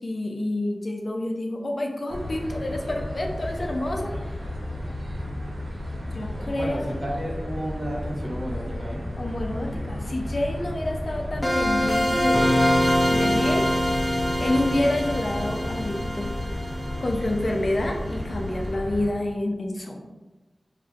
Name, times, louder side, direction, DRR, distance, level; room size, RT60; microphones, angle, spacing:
voice 1, 0.0-4.4 6.1-7.0 9.2-12.6 13.1-13.6 14.4-16.3 17.0-20.0, left 1 dB, 50° left, 1 dB, 0.4 m, -28 dB
sound 1, 2.1-19.1, left 1 dB, 80° right, 0.7 m, -33 dB
voice 2, 6.3-9.0, equal, 30° right, -4 dB, 0.9 m, -32 dB
sound 2, 11.4-18.1, equal, ahead, 1.0 m, -24 dB
5.2 x 2.5 x 2.4 m, 1.1 s
wide cardioid pair, 80°, 0 cm